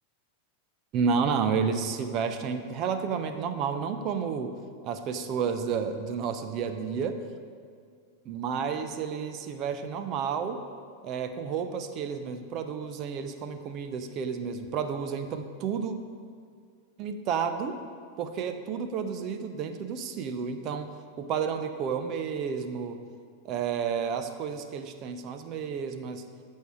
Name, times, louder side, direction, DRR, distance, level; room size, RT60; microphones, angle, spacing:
voice 1, 0.9-4.5 4.8-7.2 8.2-10.6 11.0-15.9 17.0-17.8 18.2-23.0 23.4-26.2, right 6 dB, 35° right, 9 dB, 0.9 m, -31 dB
14.5 x 6.5 x 4.9 m, 2.2 s
figure-of-eight pair, 90°, 0 cm